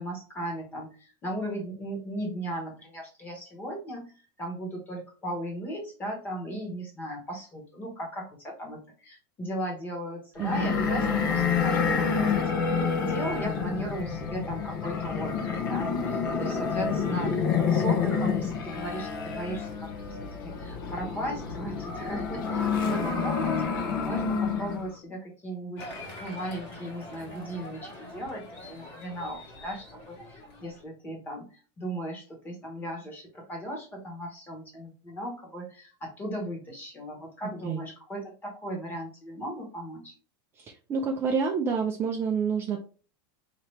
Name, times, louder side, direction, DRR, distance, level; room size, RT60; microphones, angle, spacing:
voice 1, 0.0-4.1 4.4-12.4 12.7-19.9 20.2-40.1, right 1 dB, 15° left, 1 dB, 1.2 m, -37 dB
sound 1, 10.4-24.9, left 6 dB, 60° left, 0.9 m, -28 dB
voice 2, 10.4-10.7 37.6-37.8 40.6-42.8, right 5 dB, 20° right, 1 dB, 0.4 m, -28 dB
Applause, 25.8-30.8, left 1 dB, 40° left, 1.5 m, -44 dB
4.2 x 2.9 x 3.2 m, 0.37 s
supercardioid pair, 160°, 13 cm